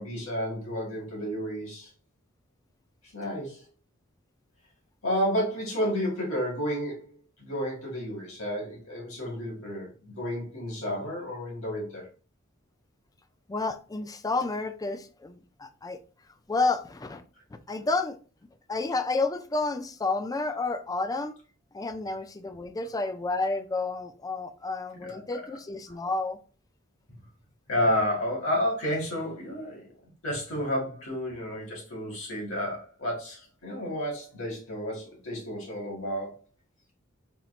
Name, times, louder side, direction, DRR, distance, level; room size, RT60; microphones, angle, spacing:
voice 1, 0.0-1.9 3.1-3.6 5.0-12.1 25.0-25.4 25.9-26.0 27.7-29.9 30.2-36.4, equal, 80° left, 2.2 m, -31 dB
voice 2, 13.5-16.0 16.5-17.2 17.7-18.2 18.7-21.3 21.7-26.4, left 3 dB, 15° left, 0.4 m, -30 dB
4.4 x 4.0 x 2.4 m
head